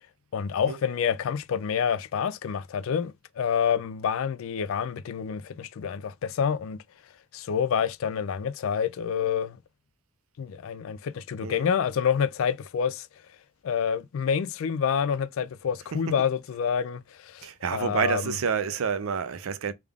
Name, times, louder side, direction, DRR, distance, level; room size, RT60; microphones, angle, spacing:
voice 1, 0.3-6.8 7.3-9.6 10.4-13.1 13.6-18.4, left 7 dB, 80° left, 0.4 m, -28 dB
voice 2, 15.9-16.3 17.4-19.7, right 6 dB, 85° right, 0.5 m, -29 dB
3.5 x 2.3 x 3.4 m
head